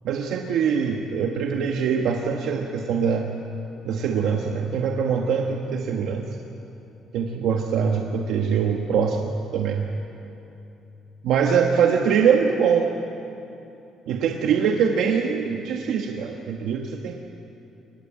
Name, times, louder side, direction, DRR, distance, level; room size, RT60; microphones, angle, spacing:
voice 1, 0.0-3.3 3.8-6.3 7.1-9.9 11.2-12.9 14.1-17.2, right 6 dB, 65° right, 2 dB, 1.4 m, -23 dB
23.5 x 19.5 x 8.8 m, 3.0 s
cardioid pair, 155°, 0 cm